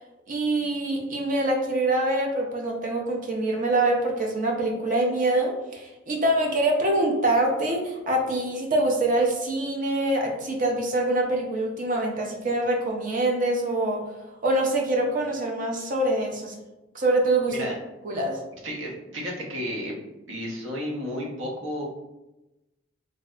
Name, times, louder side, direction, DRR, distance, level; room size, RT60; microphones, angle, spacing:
voice 1, 0.3-14.0 14.4-16.5 16.9-17.6 18.0-18.4, right 2 dB, 45° right, 1 dB, 0.5 m, -25 dB
voice 2, 18.6-19.9 20.3-21.8, equal, 85° right, -1 dB, 0.7 m, -32 dB
3.2 x 2.6 x 2.3 m, 1.0 s
head